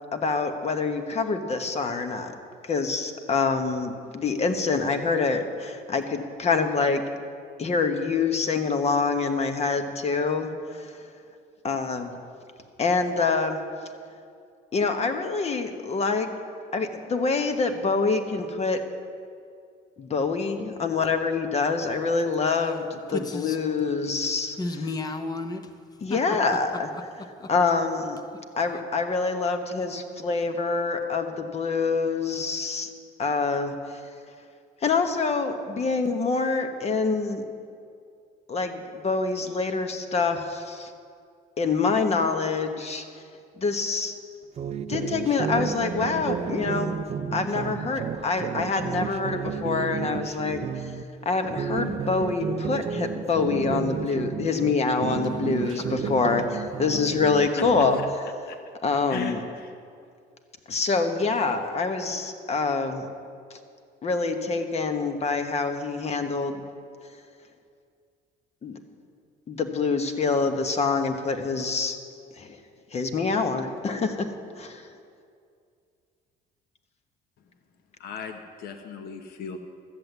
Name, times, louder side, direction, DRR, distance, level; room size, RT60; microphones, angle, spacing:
voice 1, 0.1-2.3 2.6-7.0 7.6-10.9 11.6-12.1 12.8-13.6 14.7-16.3 16.7-18.8 20.0-24.6 26.0-26.9 27.5-28.2 28.6-32.9 33.2-34.0 34.8-37.4 38.5-40.9 41.6-43.0 43.6-44.2 44.9-47.0 47.3-51.0 51.2-58.0 58.8-59.4 60.7-63.1 63.5-63.6 64.0-66.6 68.6-68.8 69.5-72.0 72.4-72.6 72.9-74.3 74.6-74.9, left 4 dB, 40° left, 1.2 m, -26 dB
voice 2, 23.1-23.6 24.6-25.7 26.0-27.5 55.3-56.4, left 2 dB, 20° left, 0.8 m, -35 dB
sound 1, 44.6-51.0 51.4-54.7 55.0-58.1, right 7 dB, 40° right, 0.5 m, -32 dB
voice 3, 59.1-59.7 78.0-79.6, left 5 dB, 70° left, 1.1 m, -37 dB
13.5 x 7.9 x 8.0 m
cardioid pair, 110°, 17 cm